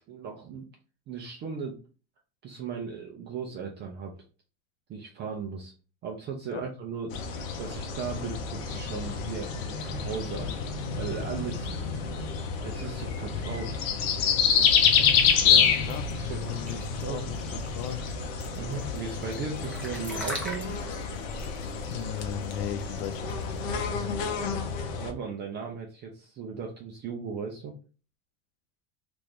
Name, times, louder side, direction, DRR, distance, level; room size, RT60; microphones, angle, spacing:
voice 1, 0.1-0.7 1.1-1.8 2.4-4.2 4.9-5.7 6.0-7.2 7.6-10.5 11.0-11.9 12.6-13.8 14.5-14.7 15.4-17.3 18.6-20.8 23.7-24.1 25.0-27.7, right 5 dB, 25° right, 0.5 m, -37 dB
sound 1, 7.1-25.1, left 7 dB, 75° left, 0.9 m, -28 dB
voice 2, 14.8-15.2 15.8-16.1 16.5-18.0 21.9-23.3, left 10 dB, 35° left, 0.4 m, -36 dB
sound 2, 15.9-23.6, equal, 5° left, 0.8 m, -41 dB
3.0 x 2.5 x 3.4 m
supercardioid pair, 135°, 40 cm